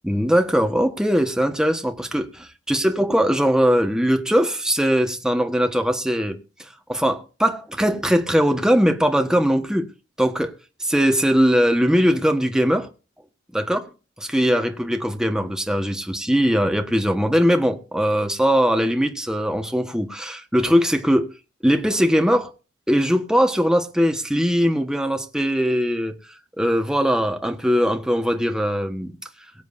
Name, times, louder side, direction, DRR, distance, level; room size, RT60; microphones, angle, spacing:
voice 1, 0.0-6.4 6.9-9.9 10.2-10.5 10.8-12.9 13.5-13.8 14.2-21.3 21.6-22.5 22.9-26.1 26.6-29.1, equal, 5° right, 1.3 m, -20 dB
23.0 x 7.7 x 2.6 m
head